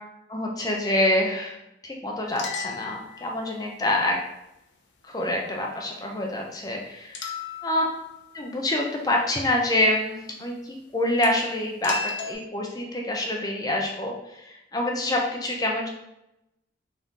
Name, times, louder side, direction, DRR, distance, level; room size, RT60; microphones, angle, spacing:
voice 1, 0.3-1.6 1.8-4.2 5.0-7.3 7.6-7.8 8.3-15.9, left 1 dB, 20° left, 0 dB, 0.5 m, -26 dB
sound 1, 2.3-3.8 7.1-8.4 11.2-11.3 11.8-12.3, left 4 dB, 70° left, 0.6 m, -35 dB
3.6 x 2.7 x 3.6 m, 0.88 s
head